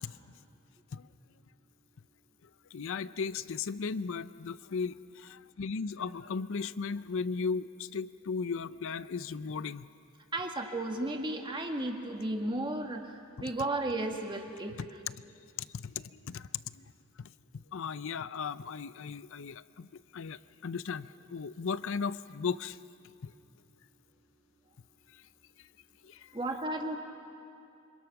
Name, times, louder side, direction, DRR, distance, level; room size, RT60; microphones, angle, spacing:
voice 1, 2.7-9.9 15.7-16.9 17.2-19.9 20.1-22.8 23.2-23.3 25.1-25.2 26.0-26.3, left 5 dB, 60° left, 16 dB, 0.5 m, -36 dB
voice 2, 10.3-13.1 13.4-14.8 26.3-27.0, right 2 dB, 20° right, 3 dB, 1.8 m, -34 dB
27.5 x 25.5 x 6.0 m, 2.5 s
head